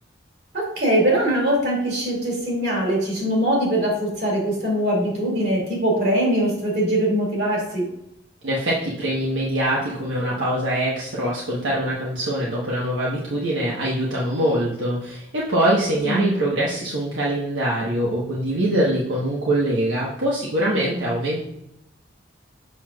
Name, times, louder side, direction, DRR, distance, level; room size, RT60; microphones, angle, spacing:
voice 1, 0.5-7.9 16.0-16.4, right 1 dB, 55° right, -2 dB, 2.4 m, -22 dB
voice 2, 8.4-21.4, right 1 dB, 80° right, -5 dB, 1.1 m, -23 dB
7.1 x 5.9 x 2.4 m, 0.81 s
head